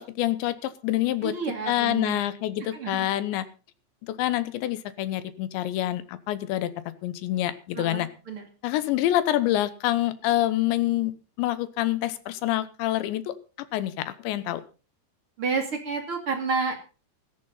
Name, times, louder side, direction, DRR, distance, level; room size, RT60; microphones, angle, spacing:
voice 1, 0.0-1.3 1.7-3.5 4.0-6.7 7.0-8.1 8.6-13.4 13.7-14.6, left 14 dB, 75° left, 14 dB, 3.1 m, -26 dB
voice 2, 1.2-2.2 2.6-3.1 7.7-8.5 15.4-16.7, right 4 dB, 35° right, 3 dB, 2.5 m, -30 dB
16.0 x 14.5 x 4.0 m, 0.35 s
omnidirectional pair, 5.7 m